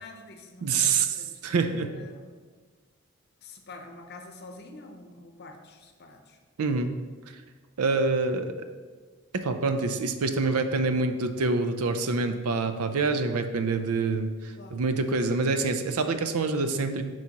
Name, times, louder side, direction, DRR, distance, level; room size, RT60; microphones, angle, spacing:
voice 1, 0.0-2.3 3.4-6.4 14.6-14.8, left 2 dB, 50° left, 4 dB, 0.7 m, -47 dB
voice 2, 0.6-1.2 1.4-1.9 6.6-6.9 7.8-8.7 9.3-17.0, right 3 dB, 90° right, 8 dB, 0.5 m, -26 dB
8.3 x 4.7 x 2.9 m, 1.4 s
head